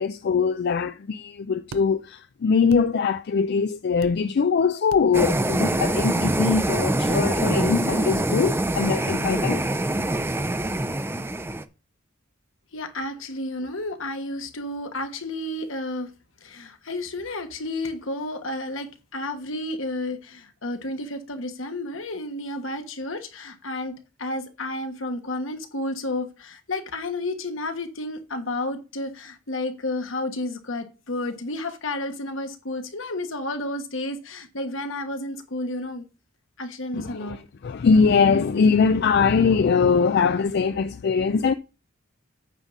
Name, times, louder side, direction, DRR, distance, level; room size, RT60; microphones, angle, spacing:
voice 1, 0.0-9.6 36.9-41.5, left 5 dB, 55° left, 0.4 m, -22 dB
sound 1, 1.7-1.8 2.7-2.9 4.0-4.2 4.9-5.1 6.0-6.1 7.1-7.3 7.6-7.7, right 5 dB, 80° right, 0.4 m, -39 dB
sound 2, 5.1-11.6, right 1 dB, 10° right, 0.5 m, -24 dB
voice 2, 12.7-16.1 16.4-36.0 36.6-37.4, left 2 dB, 75° left, 1.4 m, -31 dB
9.0 x 4.0 x 6.1 m
head